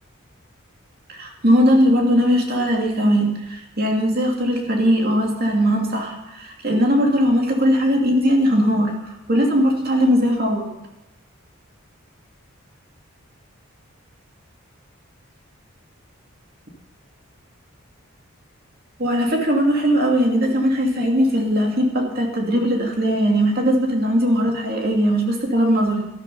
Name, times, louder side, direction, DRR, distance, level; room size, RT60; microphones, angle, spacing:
voice 1, 1.1-10.7 19.0-26.0, equal, 45° right, 0 dB, 2.7 m, -19 dB
13.0 x 12.5 x 5.6 m, 0.92 s
head